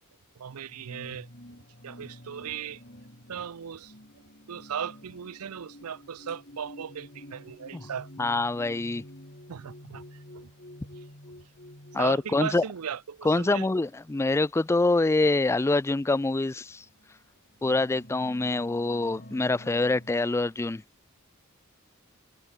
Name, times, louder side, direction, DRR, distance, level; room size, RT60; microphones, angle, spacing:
voice 1, 0.4-1.3 1.8-2.8 3.3-3.9 4.5-8.3 9.5-10.5 12.0-13.7, right 7 dB, 80° right, 0.6 m, -37 dB
sound 1, 0.6-12.9 13.7-14.0 15.2-15.3 15.9-16.0 16.8-20.3, left 1 dB, 45° left, 6.5 m, -49 dB
voice 2, 8.2-9.0 11.9-12.6 13.2-16.8 17.6-20.8, left 2 dB, 10° left, 0.3 m, -25 dB
head